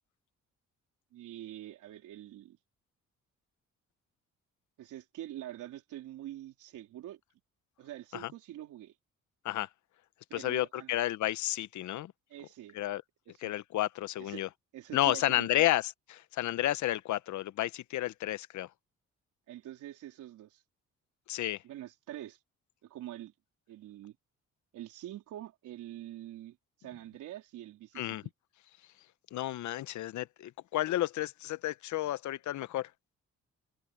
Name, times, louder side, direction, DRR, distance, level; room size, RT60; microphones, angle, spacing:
voice 1, 1.1-2.6 4.8-7.2 7.8-9.0 10.3-10.9 12.3-12.8 13.3-13.5 14.2-14.5 14.7-15.7 19.5-20.6 21.6-22.4 22.8-23.3 23.7-24.2 24.7-28.2, right 13 dB, 85° right, 3.8 m, -45 dB
voice 2, 10.3-12.1 12.7-13.0 13.4-14.5 14.9-18.7 21.3-21.6 27.9-28.2 29.3-32.9, left 14 dB, 70° left, 0.8 m, -31 dB
cardioid pair, 90°, 30 cm